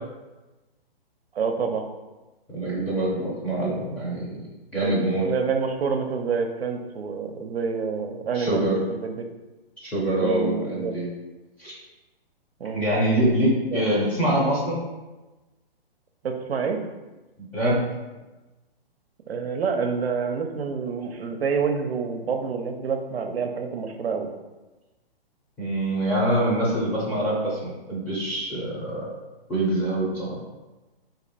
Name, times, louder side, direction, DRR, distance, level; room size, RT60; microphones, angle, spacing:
voice 1, 1.3-1.8 4.8-9.3 10.2-10.9 12.6-12.8 13.7-13.8 16.2-16.8 19.3-24.3, right 5 dB, 80° right, 4 dB, 0.6 m, -28 dB
voice 2, 2.5-5.3 8.3-8.8 9.8-11.1 11.6-11.7 12.7-14.8 17.5-17.8 25.6-29.1 29.5-30.4, right 1 dB, 5° left, -8 dB, 0.6 m, -25 dB
2.9 x 2.8 x 4.0 m, 1.1 s
hypercardioid pair, 145°, 30 cm